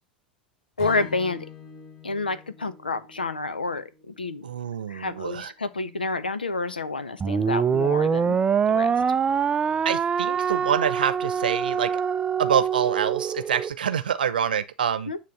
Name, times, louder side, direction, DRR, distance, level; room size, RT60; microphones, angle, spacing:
voice 1, 0.8-1.5 2.0-4.5 4.9-8.4 8.7-9.0 15.1-15.2, left 3 dB, 85° left, 0.9 m, -29 dB
Strum, 0.8-5.1, left 7 dB, 40° left, 5.0 m, -45 dB
voice 2, 4.4-5.5 9.8-11.9 12.4-15.1, right 8 dB, 75° right, 0.8 m, -26 dB
sound 1, 7.2-13.7, right 7 dB, 20° right, 0.4 m, -24 dB
9.5 x 3.3 x 6.4 m
figure-of-eight pair, 85°, 5 cm